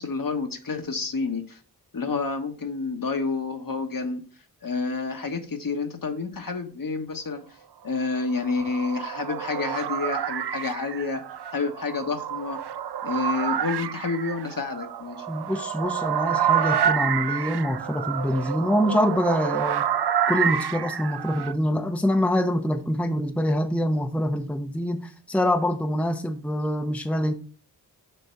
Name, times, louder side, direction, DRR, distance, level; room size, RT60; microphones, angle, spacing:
voice 1, 0.0-1.6 1.9-4.2 4.6-7.4 7.8-11.2 11.5-12.6 13.0-15.2, left 4 dB, 55° left, 1.4 m, -29 dB
sound 1, 8.1-21.6, right 9 dB, 80° right, 0.5 m, -28 dB
voice 2, 15.3-19.9 20.3-27.3, left 1 dB, 5° left, 0.8 m, -25 dB
6.7 x 3.5 x 5.7 m
cardioid pair, 45°, 40 cm